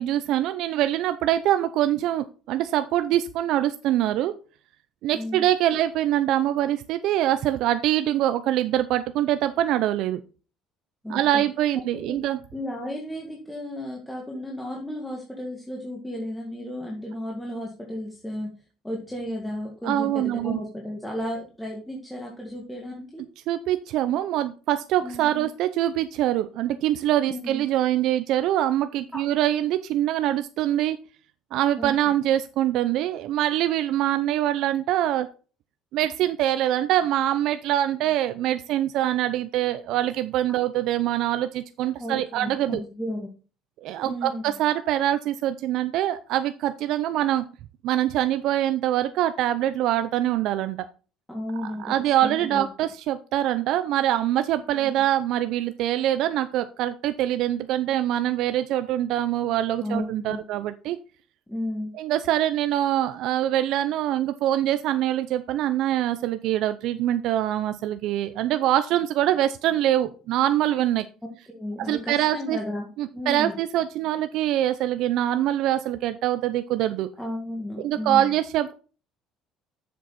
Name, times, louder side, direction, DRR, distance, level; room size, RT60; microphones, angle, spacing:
voice 1, 0.0-4.3 5.0-10.2 11.1-12.4 19.8-20.6 23.5-31.0 31.5-35.3 35.9-42.8 43.8-47.4 47.8-50.8 51.8-61.0 62.0-71.0 71.8-72.6 73.0-77.1 77.8-78.7, right 12 dB, 65° right, 10 dB, 0.5 m, -24 dB
voice 2, 5.1-5.5 11.0-11.4 12.0-12.1 12.5-18.5 18.8-23.2 25.0-25.5 27.3-27.6 31.8-31.9 42.0-43.3 44.0-44.6 51.3-52.0 52.2-52.6 54.7-54.9 59.8-60.5 61.5-61.9 71.2-72.9 73.1-73.6 77.2-78.3, left 1 dB, 5° left, -1 dB, 1.8 m, -33 dB
7.4 x 7.0 x 4.1 m, 0.36 s
cardioid pair, 130°, 0 cm